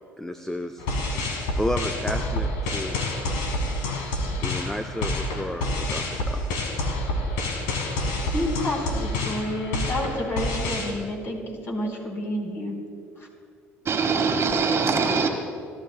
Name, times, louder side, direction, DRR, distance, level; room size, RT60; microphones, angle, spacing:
voice 1, 0.2-0.9 1.6-3.0 4.4-6.4, left 1 dB, 5° left, 8 dB, 0.7 m, -32 dB
sound 1, 0.8-10.9, left 1 dB, 75° left, 1.8 m, -28 dB
voice 2, 8.3-12.8, left 1 dB, 35° left, -1 dB, 4.2 m, -29 dB
voice 3, 13.9-15.3, right 4 dB, 40° right, 4 dB, 1.6 m, -22 dB
28.5 x 13.0 x 2.2 m, 2.4 s
hypercardioid pair, 55°, 7 cm